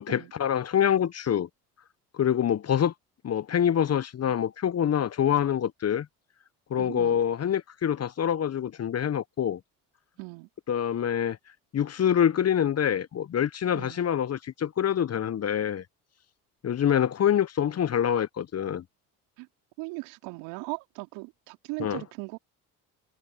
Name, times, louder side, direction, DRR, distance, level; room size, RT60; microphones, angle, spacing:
voice 1, 0.0-1.5 2.1-2.9 3.2-6.1 6.7-9.6 10.7-11.4 11.7-15.8 16.6-18.8 21.8-22.0, left 9 dB, 35° left, 0.9 m, -26 dB
voice 2, 6.8-7.2 10.2-10.5 13.7-14.0 19.4-19.5 19.8-22.4, right 28 dB, 70° right, 3.1 m, -38 dB
hypercardioid pair, 60°, 45 cm